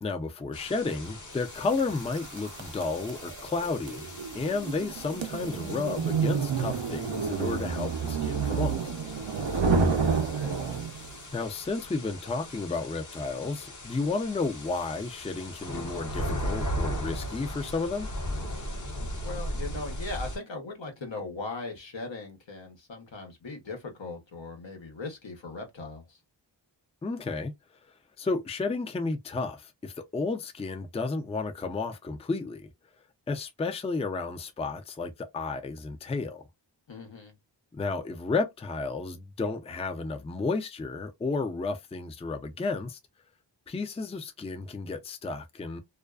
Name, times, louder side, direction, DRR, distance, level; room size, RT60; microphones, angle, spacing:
voice 1, 0.0-8.9 11.3-18.1 27.0-27.5 28.2-32.7 33.3-36.5 37.7-43.0 43.7-45.8, left 3 dB, 15° left, 0.4 m, -32 dB
sound 1, 0.5-20.4, equal, 45° left, 0.7 m, -38 dB
sound 2, 1.8-11.1, right 5 dB, 80° right, 0.6 m, -29 dB
voice 2, 9.4-10.6 19.0-26.2 36.9-37.3, left 3 dB, 80° left, 0.9 m, -39 dB
2.4 x 2.3 x 2.3 m
wide cardioid pair, 70°, 44 cm